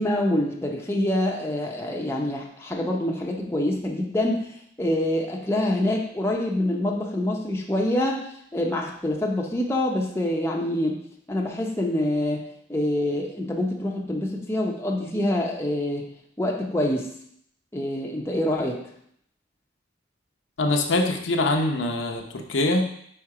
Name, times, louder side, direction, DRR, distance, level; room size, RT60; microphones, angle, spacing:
voice 1, 0.0-4.5 4.8-8.2 8.5-11.0 11.3-16.1 16.4-17.1 17.7-18.8, left 1 dB, 15° left, -1 dB, 0.6 m, -26 dB
voice 2, 20.6-22.9, left 2 dB, 70° left, 3 dB, 0.7 m, -23 dB
4.4 x 4.3 x 4.8 m, 0.68 s
head